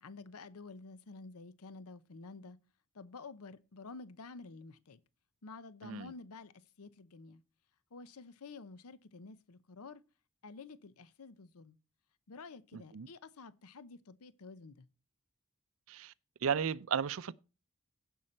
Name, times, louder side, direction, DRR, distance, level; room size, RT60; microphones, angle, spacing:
voice 1, 0.0-2.6 2.9-5.0 5.4-7.4 7.9-10.0 10.4-11.8 12.3-14.9, left 4 dB, 85° left, 0.7 m, -50 dB
voice 2, 5.8-6.1 12.7-13.1 15.9-16.1 16.4-17.3, right 7 dB, 70° right, 0.5 m, -34 dB
16.0 x 5.6 x 4.3 m
head